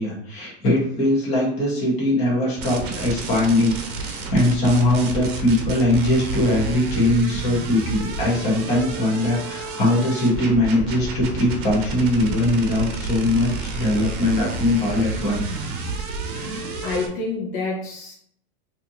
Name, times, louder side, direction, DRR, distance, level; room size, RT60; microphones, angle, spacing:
voice 1, 0.0-15.9, left 1 dB, 20° left, -5 dB, 1.1 m, -21 dB
sound 1, 2.6-17.1, right 3 dB, 50° right, 0.8 m, -30 dB
voice 2, 16.3-18.1, left 3 dB, 50° left, -2 dB, 0.8 m, -29 dB
4.2 x 2.8 x 2.8 m, 0.66 s
supercardioid pair, 175°, 33 cm